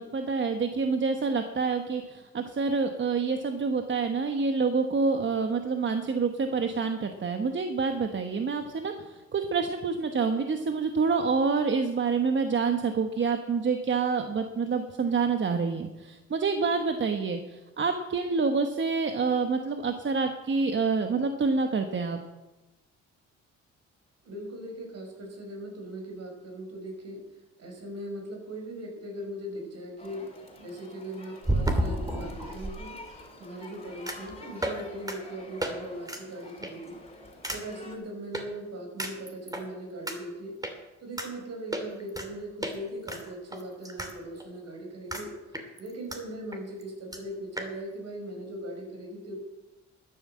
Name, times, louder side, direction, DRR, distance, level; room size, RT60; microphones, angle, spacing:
voice 1, 0.0-22.2, right 4 dB, 40° right, 6 dB, 1.2 m, -27 dB
voice 2, 24.2-27.2 27.6-30.3 30.6-33.0 33.4-37.0 37.5-40.6 41.0-45.3 45.8-49.4, right 1 dB, 55° right, 3 dB, 4.9 m, -39 dB
sound 1, 29.0-29.1 31.4-32.7 34.1-34.3 34.6-34.8 35.1-35.2 35.6-35.7 36.1-36.2 36.6-36.9 37.4-37.6 38.3-38.4 39.0-39.6 40.1-40.2 40.6-40.7 41.2-41.3 41.7-42.3 42.6-42.8 43.1-44.1 44.4-44.5 45.1-45.3 45.5-46.2 46.5-46.6 46.8-46.9 47.1-47.2 47.6-47.7, right 1 dB, 10° right, 2.6 m, -31 dB
sound 2, 30.0-38.0, left 2 dB, 20° left, 3.5 m, -48 dB
13.0 x 10.0 x 7.5 m, 1.1 s
cardioid pair, 90°, 30 cm